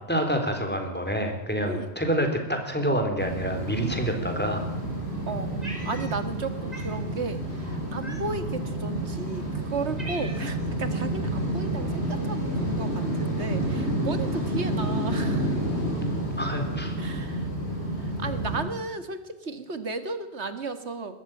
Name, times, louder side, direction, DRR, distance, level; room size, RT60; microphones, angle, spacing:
voice 1, 0.1-4.6 16.4-17.0, equal, 10° left, 4 dB, 3.8 m, -27 dB
sound 1, 3.2-18.6, right 1 dB, 70° left, 7.2 m, -29 dB
voice 2, 5.3-15.6 17.0-17.5 18.0-21.1, right 3 dB, 75° right, 10 dB, 2.1 m, -34 dB
Cat, 5.6-6.4 6.7-7.0 8.0-8.5 9.2-9.3 9.7-10.7, right 1 dB, 35° right, 3.3 m, -41 dB
20.5 x 14.0 x 9.1 m, 0.93 s
omnidirectional pair, 1.1 m